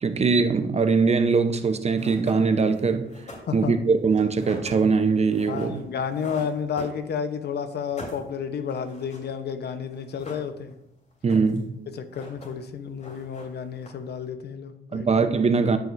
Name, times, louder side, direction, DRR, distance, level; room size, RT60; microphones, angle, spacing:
voice 1, 0.0-3.1 3.5-5.8 11.2-11.7 14.9-15.8, right 4 dB, 35° right, 9 dB, 0.7 m, -21 dB
sound 1, 1.6-1.7 1.9-7.4 7.7-9.3 9.6-9.7 9.9-10.8 11.1-11.7 12.0-12.7 13.0-14.2, left 1 dB, 35° left, 3.3 m, -44 dB
voice 2, 5.5-10.7 11.9-15.1, left 7 dB, 55° left, 10 dB, 0.8 m, -31 dB
13.5 x 5.9 x 2.6 m, 0.82 s
cardioid pair, 90°, 20 cm